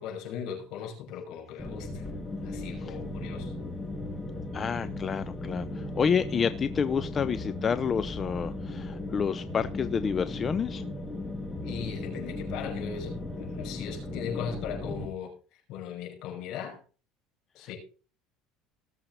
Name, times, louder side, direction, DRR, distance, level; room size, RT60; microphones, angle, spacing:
voice 1, 0.0-2.1 2.4-3.5 11.6-15.3 15.7-16.8 17.5-17.8, left 7 dB, 65° left, 1 dB, 6.1 m, -38 dB
sound 1, 1.6-15.1, left 2 dB, 10° left, 2.9 m, -36 dB
voice 2, 4.5-10.8, left 6 dB, 30° left, 13 dB, 0.6 m, -29 dB
18.5 x 7.5 x 4.1 m, 0.37 s
supercardioid pair, 120°, 0 cm